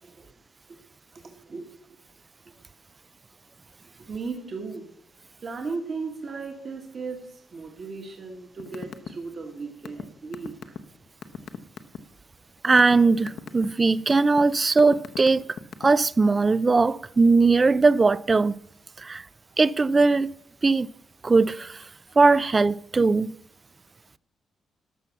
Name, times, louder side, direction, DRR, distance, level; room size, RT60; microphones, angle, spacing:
voice 1, 1.2-2.0 4.1-4.9 5.4-10.5, right 4 dB, 40° right, 1.5 m, -36 dB
sound 1, 8.6-9.1 9.4-12.0 12.5-13.0 13.3-13.7 14.1-14.4 14.8-16.1, left 7 dB, 60° left, 0.8 m, -36 dB
voice 2, 12.6-15.4 15.8-18.6 19.0-19.2 19.6-20.3 20.6-20.9 21.2-21.8 22.2-23.3, right 3 dB, 25° right, 0.3 m, -20 dB
12.5 x 5.9 x 7.1 m
cardioid pair, 140°, 0 cm